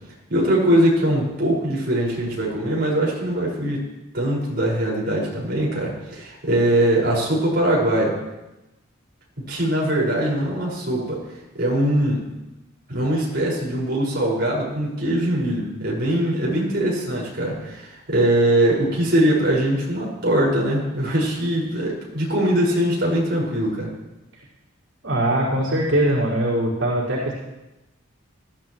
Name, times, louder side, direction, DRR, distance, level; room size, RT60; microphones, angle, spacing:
voice 1, 0.3-3.8 4.1-8.2 9.5-11.2 11.5-12.3 12.9-23.9, right 1 dB, 55° right, -4 dB, 5.6 m, -21 dB
voice 2, 25.0-27.3, right 1 dB, 80° right, -7 dB, 5.3 m, -21 dB
20.5 x 15.0 x 3.2 m, 0.99 s
head